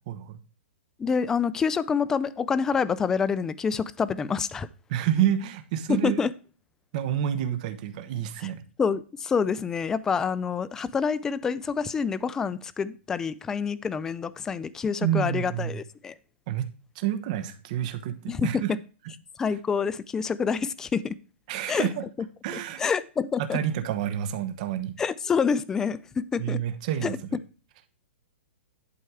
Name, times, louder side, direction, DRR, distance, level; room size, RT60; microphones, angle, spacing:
voice 1, 0.1-0.4 4.9-6.2 6.9-8.6 15.0-15.8 16.5-16.7 17.0-18.7 21.5-22.0 22.4-22.8 23.4-24.9 26.4-27.2, right 10 dB, 35° right, 10 dB, 1.0 m, -28 dB
voice 2, 1.0-4.7 5.9-6.3 8.4-8.5 8.8-16.1 18.3-18.5 19.4-21.1 21.7-21.9 22.5-23.6 25.0-26.6 27.0-27.2, left 6 dB, 10° left, 16 dB, 0.3 m, -27 dB
11.0 x 4.4 x 4.8 m, 0.36 s
hypercardioid pair, 165°, 7 cm